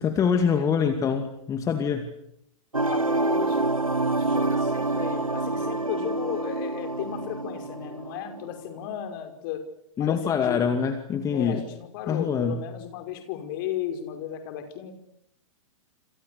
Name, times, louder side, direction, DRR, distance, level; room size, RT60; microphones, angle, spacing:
voice 1, 0.0-2.1 10.0-11.6 12.1-12.6, left 6 dB, 20° left, 6 dB, 2.4 m, -25 dB
sound 1, 2.7-8.6, right 2 dB, 90° right, 1.3 m, -27 dB
voice 2, 2.9-3.7 3.9-9.6 10.0-10.6 11.3-14.9, left 10 dB, 40° left, 5 dB, 5.5 m, -35 dB
29.0 x 27.0 x 6.8 m, 0.76 s
figure-of-eight pair, 110°, 17 cm